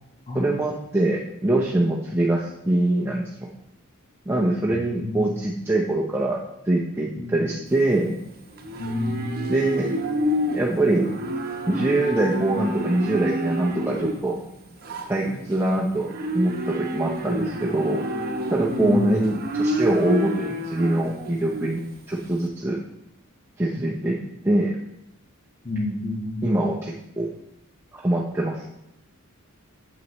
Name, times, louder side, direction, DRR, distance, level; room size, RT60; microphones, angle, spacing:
voice 1, 0.3-3.3 4.3-6.4 6.7-8.2 9.5-9.9 10.5-11.1 11.7-14.4 15.1-18.0 18.5-21.8 22.1-22.8 23.6-24.2 24.4-24.8 26.4-27.3 27.9-28.7, right 2 dB, 10° right, -3 dB, 0.7 m, -23 dB
voice 2, 4.8-5.3 7.1-7.3 8.8-9.5 18.7-19.2 25.6-26.8, left 2 dB, 35° left, -1 dB, 1.4 m, -29 dB
Livestock farm animals working animals, 7.7-22.4, equal, 45° right, 0.9 m, -29 dB
8.9 x 7.7 x 3.1 m, 0.84 s
head